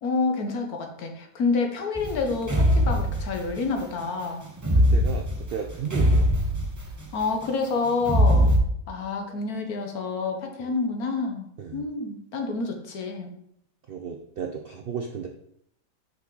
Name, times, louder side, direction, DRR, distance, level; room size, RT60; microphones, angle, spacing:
voice 1, 0.0-4.4 6.0-6.2 7.1-8.5 8.9-11.5 11.7-13.3, left 4 dB, 70° left, 4 dB, 1.5 m, -28 dB
sound 1, 1.9-3.6 4.6-7.2 8.0-8.6, equal, 15° right, 0.6 m, -21 dB
voice 2, 4.9-6.3 8.3-8.6 10.6-10.7 11.6-11.8 13.9-15.3, right 7 dB, 65° right, 3 dB, 0.5 m, -34 dB
6.1 x 5.7 x 3.9 m, 0.72 s
omnidirectional pair, 1.7 m